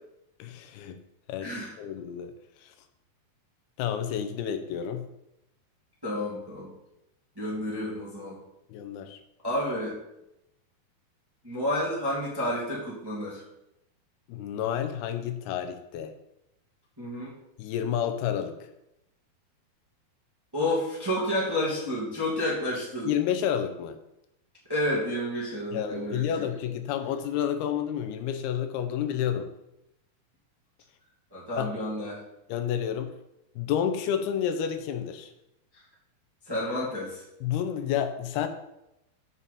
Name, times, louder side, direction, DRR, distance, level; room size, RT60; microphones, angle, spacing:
voice 1, 0.4-1.0 1.3-2.3 3.8-5.1 8.7-9.2 14.3-16.1 17.6-18.5 23.0-24.0 25.7-29.5 31.6-31.7 32.5-33.1 33.6-35.3 37.4-38.5, left 9 dB, 90° left, 8 dB, 2.7 m, -30 dB
voice 2, 1.4-1.7 6.0-6.7 7.3-8.4 9.4-10.0 11.4-13.4 17.0-17.3 20.5-23.1 24.7-26.5 31.3-32.2 36.5-37.2, left 1 dB, 10° right, -6 dB, 1.3 m, -30 dB
7.5 x 7.0 x 4.2 m, 0.86 s
omnidirectional pair, 4.4 m